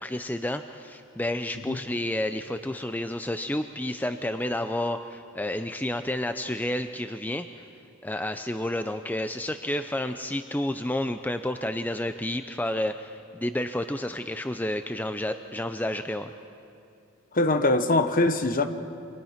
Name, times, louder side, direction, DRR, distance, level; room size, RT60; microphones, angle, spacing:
voice 1, 0.0-7.5 8.0-16.3, left 1 dB, 10° left, 0.5 m, -30 dB
voice 2, 17.3-18.7, left 2 dB, 40° left, 1.1 m, -22 dB
28.5 x 26.0 x 5.8 m
head